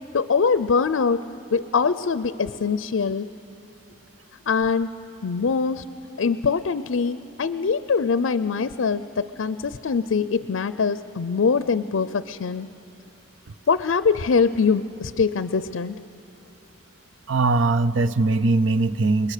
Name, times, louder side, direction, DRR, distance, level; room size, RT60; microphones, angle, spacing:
voice 1, 0.1-1.2 1.5-3.3 4.5-4.9 5.2-5.8 6.2-12.7 13.7-16.0, left 5 dB, 75° left, 14 dB, 0.5 m, -23 dB
voice 2, 17.3-19.3, right 3 dB, 65° right, 14 dB, 0.6 m, -20 dB
28.0 x 21.0 x 6.7 m, 2.9 s
head